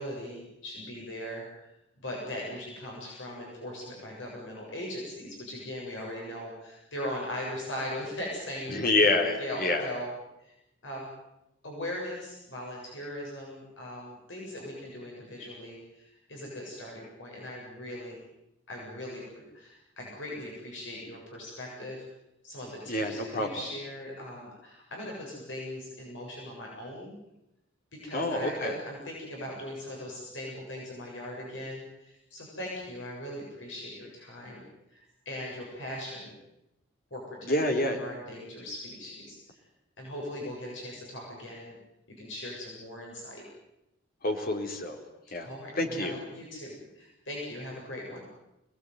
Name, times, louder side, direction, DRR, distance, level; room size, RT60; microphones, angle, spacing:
voice 1, 0.0-1.7 2.0-8.8 9.4-10.1 10.4-10.5 10.8-11.1 11.6-18.2 18.7-22.0 22.4-27.2 27.9-34.6 34.9-36.3 37.1-39.6 40.0-41.8 42.2-43.4 45.4-48.3, left 1 dB, 70° left, -2 dB, 7.8 m, -39 dB
voice 2, 8.7-9.9 22.9-23.5 28.1-28.8 37.4-38.0 44.2-45.0 45.3-45.5 45.8-46.1, left 2 dB, 50° left, 3 dB, 3.9 m, -27 dB
26.0 x 20.0 x 9.5 m, 0.88 s
head